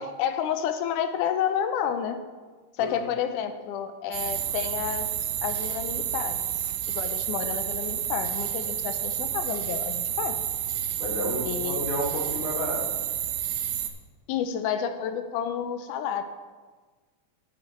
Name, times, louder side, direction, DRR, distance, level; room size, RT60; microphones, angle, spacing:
voice 1, 0.0-2.2 2.8-5.1 5.4-6.4 6.9-10.4 11.4-11.9 14.3-16.2, left 8 dB, 90° left, 9 dB, 2.1 m, -30 dB
sound 1, 4.1-13.9, right 10 dB, 75° right, 1.8 m, -30 dB
voice 2, 11.0-12.8, left 1 dB, 70° left, -4 dB, 3.8 m, -31 dB
9.9 x 8.9 x 4.2 m, 1.4 s
omnidirectional pair, 3.6 m